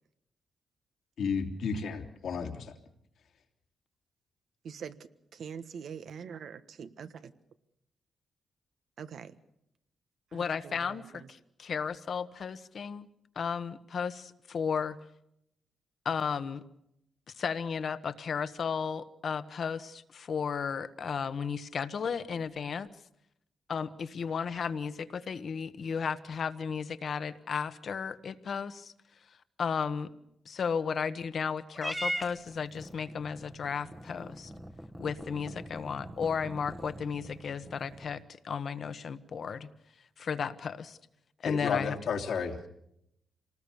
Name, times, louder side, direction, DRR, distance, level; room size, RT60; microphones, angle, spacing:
voice 1, 1.2-2.7 41.4-42.7, left 6 dB, 75° left, 3 dB, 2.9 m, -32 dB
voice 2, 4.6-7.3 9.0-9.4 10.3-11.3, right 7 dB, 70° right, 11 dB, 1.4 m, -44 dB
voice 3, 10.3-13.1 13.3-15.0 16.0-16.6 17.4-22.9 23.7-28.9 29.6-30.1 30.4-34.5 35.0-39.7 40.2-41.0 41.4-41.9, left 6 dB, 60° left, 12 dB, 1.3 m, -34 dB
Purr / Meow, 31.7-38.2, equal, 5° right, 1.2 m, -41 dB
27.0 x 19.5 x 7.0 m, 0.79 s
cardioid pair, 95°, 0 cm